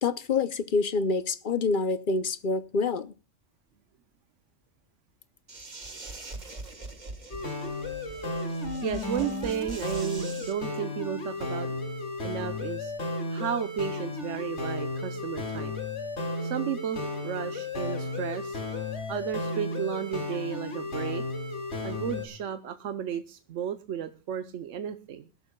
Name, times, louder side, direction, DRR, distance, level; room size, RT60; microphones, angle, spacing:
voice 1, 0.0-3.1, left 4 dB, 50° left, 0.8 m, -27 dB
sound 1, 5.5-10.5, right 2 dB, 40° right, 1.7 m, -42 dB
sound 2, 7.3-22.3, left 2 dB, 70° left, 2.9 m, -34 dB
voice 2, 8.8-11.8 12.2-12.9 13.3-15.7 16.4-18.6 19.1-21.2 21.8-25.3, right 9 dB, 85° right, 1.1 m, -33 dB
22.0 x 11.5 x 2.3 m
omnidirectional pair, 1.2 m